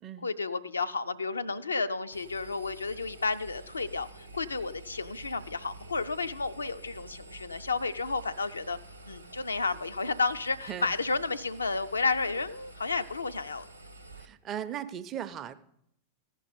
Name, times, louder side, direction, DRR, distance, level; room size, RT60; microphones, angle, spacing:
voice 1, 0.2-8.8 9.1-13.7, left 4 dB, 75° left, 11 dB, 0.3 m, -32 dB
Engine, 2.1-14.3, right 2 dB, 85° right, 0.6 m, -49 dB
voice 2, 14.2-15.5, right 10 dB, 30° right, 11 dB, 0.5 m, -37 dB
14.0 x 5.3 x 5.0 m, 0.75 s
figure-of-eight pair, 90°, 0 cm